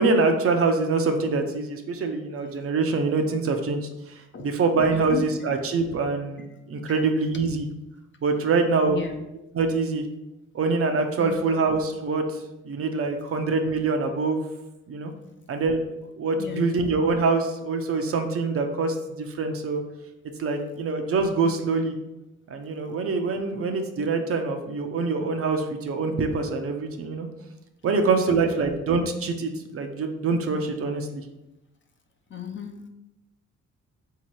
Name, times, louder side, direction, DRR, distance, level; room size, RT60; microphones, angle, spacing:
voice 1, 0.0-3.8 4.1-4.2 4.4-7.7 8.2-9.0 9.5-10.0 10.5-12.4 12.6-14.4 14.9-15.1 15.5-19.8 20.4-22.0 22.5-27.3 27.8-31.2, right 3 dB, 50° right, 5 dB, 0.6 m, -25 dB
voice 2, 4.8-5.2 6.9-7.0 8.9-9.2 11.2-11.5 16.4-16.7 27.8-28.6 32.3-32.9, left 6 dB, 40° left, 3 dB, 0.7 m, -35 dB
3.8 x 2.9 x 4.6 m, 0.94 s
cardioid pair, 90°, 30 cm